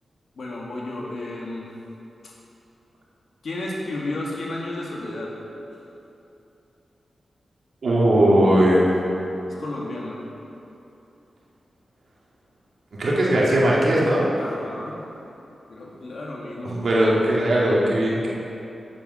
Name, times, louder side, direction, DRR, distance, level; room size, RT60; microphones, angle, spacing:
voice 1, 0.3-1.7 2.2-2.3 3.4-5.3 9.5-10.2 14.4-15.0 15.3-15.4 15.7-16.8, left 2 dB, 70° left, -3 dB, 1.9 m, -32 dB
voice 2, 7.8-8.9 13.0-14.3 16.6-18.3, right 1 dB, 70° right, -5 dB, 2.2 m, -19 dB
8.5 x 7.1 x 5.5 m, 2.9 s
cardioid pair, 60°, 0 cm